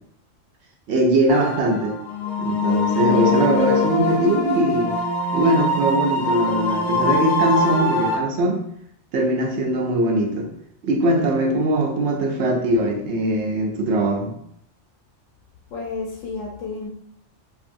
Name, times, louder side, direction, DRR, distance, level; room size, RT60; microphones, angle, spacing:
voice 1, 0.9-2.0 2.4-5.0 5.3-8.6 9.1-10.5 10.8-14.3, right 1 dB, 70° right, 2 dB, 0.8 m, -21 dB
sound 1, 1.3-8.1, left 2 dB, 5° left, 0.6 m, -22 dB
voice 2, 15.7-16.9, left 4 dB, 85° left, -3 dB, 1.0 m, -31 dB
2.7 x 2.6 x 2.5 m, 0.68 s
omnidirectional pair, 1.3 m